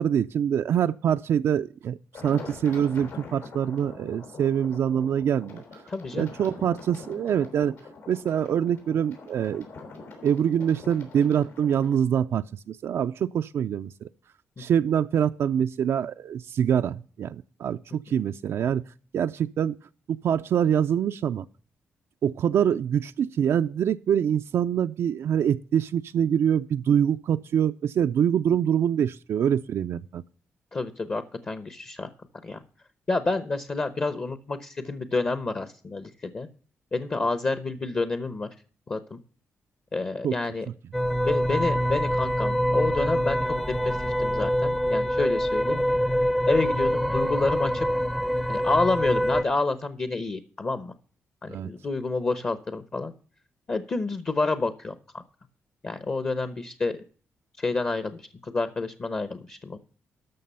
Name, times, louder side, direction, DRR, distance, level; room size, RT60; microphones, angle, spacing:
voice 1, 0.0-2.0 2.2-5.6 6.1-7.8 8.1-9.7 10.2-14.1 14.6-18.8 19.1-19.7 20.1-21.4 22.2-30.2 40.2-40.4 51.5-51.7, right 9 dB, 65° right, 0.4 m, -25 dB
sound 1, 2.1-12.0, left 3 dB, 80° left, 5.3 m, -44 dB
voice 2, 5.9-6.3 30.7-32.1 32.4-32.6 33.1-36.5 36.9-38.5 38.9-39.2 39.9-40.7 41.3-43.5 43.8-45.8 46.5-47.9 48.5-50.9 51.4-53.1 53.7-54.9 55.8-57.0 57.6-59.8, left 3 dB, 35° left, 0.9 m, -29 dB
sound 2, 40.9-49.4, equal, 5° left, 0.6 m, -25 dB
13.0 x 6.0 x 5.5 m
cardioid pair, 105°, 5 cm